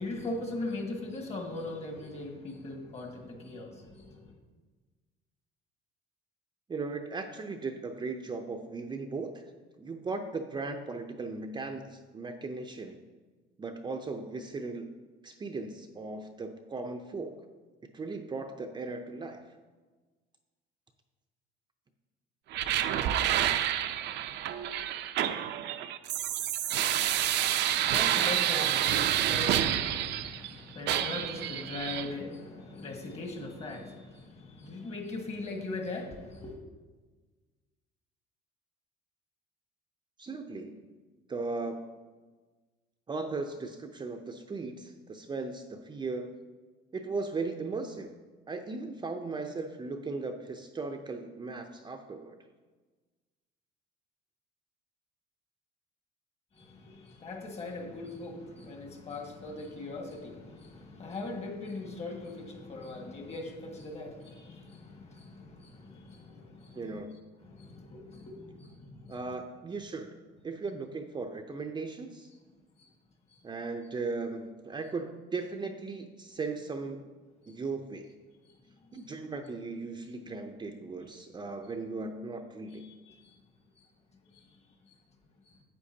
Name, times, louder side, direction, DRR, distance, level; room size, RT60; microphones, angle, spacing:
voice 1, 0.0-4.3 27.7-36.6 56.5-67.0 67.4-69.2 72.8-72.9 73.3-73.4 77.5-77.6 78.9-79.0 82.7-83.3 83.8-83.9 84.3-84.5 84.9-85.0, left 2 dB, 35° left, 2 dB, 1.7 m, -40 dB
voice 2, 6.7-9.5 9.8-13.0 13.6-14.9 15.2-17.5 17.8-19.4 40.2-40.9 41.3-41.8 43.1-46.3 46.9-48.1 48.5-52.4 66.7-67.2 69.1-72.3 73.4-77.1 77.5-78.1 78.9-82.9, right 3 dB, 25° right, 5 dB, 0.6 m, -37 dB
sound 1, 22.5-30.5 30.9-32.1, right 11 dB, 65° right, 0.5 m, -29 dB
9.7 x 8.3 x 2.8 m, 1.3 s
cardioid pair, 105°, 19 cm